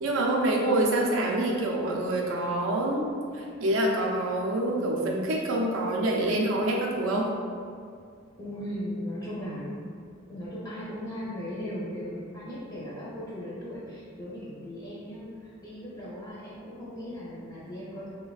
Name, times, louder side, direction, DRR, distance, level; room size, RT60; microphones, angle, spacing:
voice 1, 0.0-3.1 3.4-7.3, right 1 dB, 80° right, -1 dB, 0.5 m, -26 dB
voice 2, 8.4-9.7 10.3-18.1, equal, 20° left, -8 dB, 0.4 m, -37 dB
3.2 x 2.1 x 2.3 m, 2.2 s
head